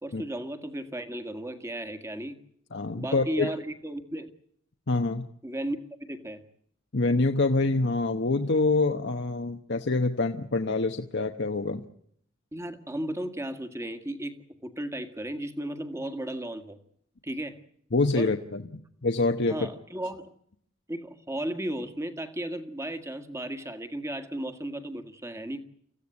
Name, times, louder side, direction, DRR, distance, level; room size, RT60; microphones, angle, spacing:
voice 1, 0.0-2.4 3.0-4.3 5.4-5.8 6.1-6.4 12.5-16.8 17.2-17.6 18.1-18.3 19.5-20.3 20.9-25.6, right 1 dB, 15° right, 9 dB, 1.8 m, -35 dB
voice 2, 2.7-3.5 4.9-5.2 6.9-11.8 17.9-19.7, left 3 dB, 60° left, 5 dB, 1.0 m, -26 dB
26.0 x 15.5 x 9.7 m, 0.69 s
head